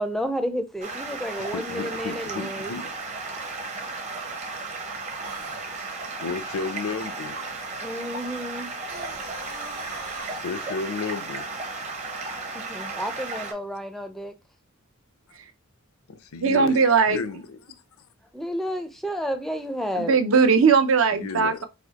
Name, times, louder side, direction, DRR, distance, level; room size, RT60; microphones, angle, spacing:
voice 1, 0.0-2.7 7.8-8.7 12.5-14.3 18.3-20.2, equal, ahead, 0.4 m, -31 dB
Stream, 0.8-13.5, right 3 dB, 30° right, 0.8 m, -34 dB
voice 2, 1.4-2.9 6.2-7.5 7.8-7.9 10.4-11.5 12.3-12.4 16.1-16.8 17.1-17.6 21.1-21.6, left 4 dB, 80° left, 0.5 m, -33 dB
sound 1, 5.2-5.6 8.8-10.4, right 2 dB, 80° right, 1.3 m, -41 dB
voice 3, 16.4-17.2 20.0-21.6, right 5 dB, 60° right, 0.6 m, -19 dB
4.2 x 2.7 x 2.8 m
head